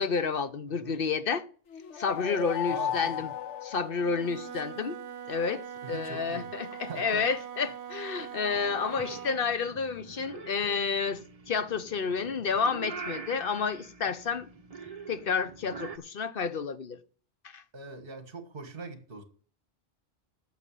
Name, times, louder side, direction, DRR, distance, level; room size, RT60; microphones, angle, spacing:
voice 1, 0.0-1.4 2.0-3.3 3.6-5.0 5.3-11.2 11.5-14.5 15.1-17.0 17.5-17.6, left 5 dB, 55° left, 1.0 m, -30 dB
sound 1, 1.7-4.6, left 10 dB, 80° left, 1.2 m, -35 dB
voice 2, 2.7-3.3 4.5-4.6 5.8-7.3 17.7-19.2, right 4 dB, 50° right, 1.8 m, -43 dB
Wind instrument woodwind instrument, 4.1-9.5, right 9 dB, 70° right, 1.2 m, -42 dB
Purr / Meow, 8.5-16.0, right 4 dB, 35° right, 0.9 m, -44 dB
9.1 x 7.2 x 8.3 m
omnidirectional pair, 1.2 m